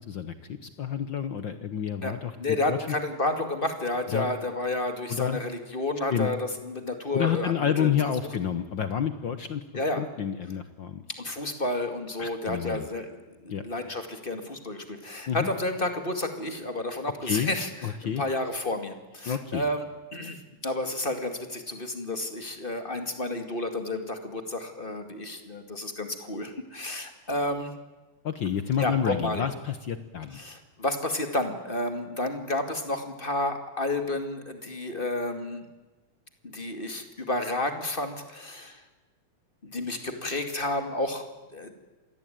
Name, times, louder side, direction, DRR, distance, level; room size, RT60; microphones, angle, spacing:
voice 1, 0.1-2.8 4.1-4.3 5.1-5.4 6.1-6.3 7.1-9.6 10.0-11.0 12.2-12.9 13.5-13.6 15.3-15.5 17.2-17.5 17.8-18.2 19.3-19.6 28.2-30.4, left 8 dB, 70° left, 11 dB, 1.1 m, -29 dB
voice 2, 2.0-7.9 9.7-10.0 11.1-27.7 28.8-29.5 30.3-35.7 36.4-38.8 39.6-41.3 41.5-41.7, left 2 dB, 20° left, 7 dB, 1.8 m, -31 dB
27.0 x 20.5 x 9.2 m, 1.2 s
omnidirectional pair, 3.6 m